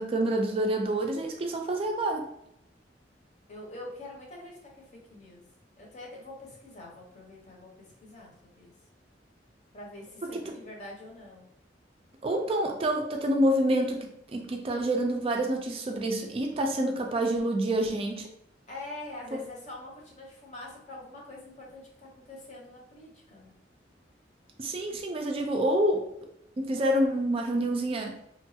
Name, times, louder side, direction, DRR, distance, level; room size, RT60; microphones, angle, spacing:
voice 1, 0.0-2.3 12.2-18.3 24.6-26.1 26.6-28.2, right 1 dB, 30° right, 3 dB, 0.3 m, -27 dB
voice 2, 3.5-5.4 5.8-8.7 9.7-11.5 18.7-23.5, left 2 dB, 40° left, -2 dB, 0.8 m, -45 dB
2.9 x 2.3 x 2.7 m, 0.77 s
head